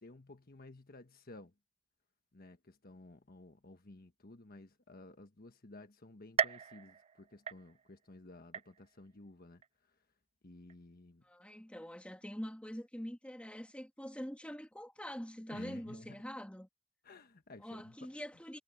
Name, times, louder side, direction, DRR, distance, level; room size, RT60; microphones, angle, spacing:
voice 1, 0.0-1.5 2.3-9.9 10.4-11.2 15.5-16.2 17.0-18.1, left 2 dB, 50° left, 1.3 m, -54 dB
sound 1, 6.4-8.1 8.5-9.1 9.6-9.7 10.7-10.8, right 7 dB, 30° right, 0.3 m, -38 dB
voice 2, 11.2-16.7 17.6-18.6, equal, 5° left, 2.4 m, -44 dB
head